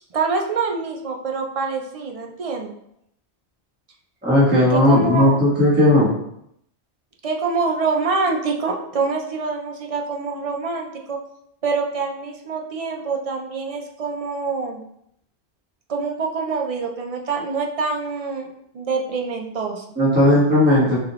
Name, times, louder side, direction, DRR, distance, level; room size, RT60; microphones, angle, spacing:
voice 1, 0.1-2.7 4.7-5.4 7.2-11.2 11.6-14.8 15.9-18.5 18.7-19.8, right 4 dB, 40° right, 1 dB, 0.5 m, -25 dB
voice 2, 4.2-6.1 20.0-21.0, left 1 dB, 10° right, -9 dB, 1.4 m, -16 dB
5.9 x 2.7 x 3.0 m, 0.74 s
omnidirectional pair, 1.1 m